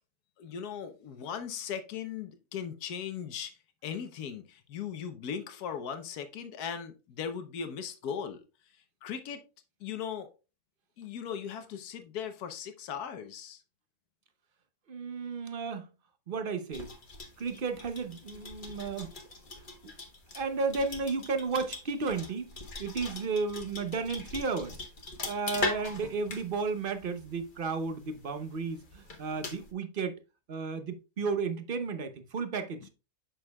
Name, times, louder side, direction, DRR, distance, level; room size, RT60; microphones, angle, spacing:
voice 1, 0.4-3.6 3.8-8.4 9.0-9.4 9.8-10.3 11.0-13.6, left 7 dB, 80° left, 1.4 m, -38 dB
voice 2, 14.9-15.9 16.3-16.9 17.4-19.1 19.8-19.9 20.3-22.5 22.8-24.8 25.2-30.2 30.5-32.9, right 4 dB, 45° right, 0.7 m, -33 dB
sound 1, 16.7-29.7, left 3 dB, 35° left, 1.2 m, -41 dB
7.8 x 6.3 x 2.3 m
omnidirectional pair, 1.6 m